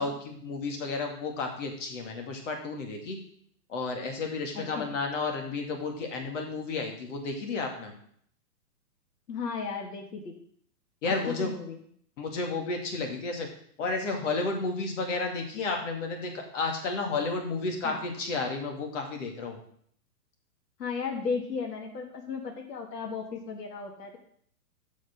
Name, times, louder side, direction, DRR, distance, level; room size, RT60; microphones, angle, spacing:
voice 1, 0.0-3.2 3.7-7.9 11.0-11.5 12.2-13.5 13.8-19.6, left 3 dB, 50° left, 3 dB, 2.2 m, -32 dB
voice 2, 4.5-4.9 9.3-10.3 11.0-11.8 17.8-18.2 20.8-24.2, left 5 dB, 80° left, 1 dB, 2.0 m, -35 dB
8.0 x 6.2 x 5.9 m, 0.63 s
hypercardioid pair, 160°, 48 cm